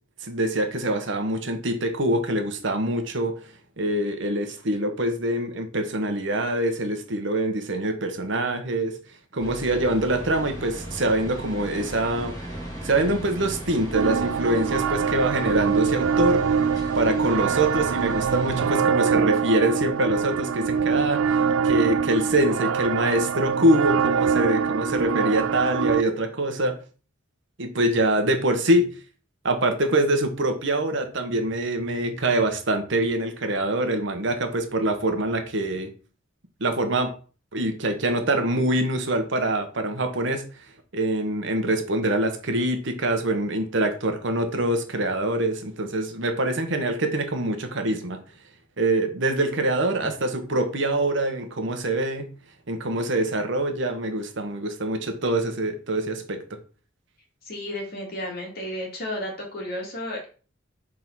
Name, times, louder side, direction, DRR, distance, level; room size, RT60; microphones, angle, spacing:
voice 1, 0.2-3.4 3.8-9.0 9.3-12.3 12.8-16.5 16.9-26.7 27.6-28.9 29.4-35.9 36.6-37.1 37.5-40.4 40.9-48.2 48.8-52.3 52.7-56.4, right 1 dB, 60° right, 1.0 m, -24 dB
sound 1, 9.4-18.7, right 1 dB, 20° left, 2.5 m, -36 dB
sound 2, 13.9-26.0, right 6 dB, 80° right, 0.3 m, -24 dB
voice 2, 57.4-60.2, left 1 dB, 50° left, 2.1 m, -32 dB
4.6 x 3.7 x 5.6 m
head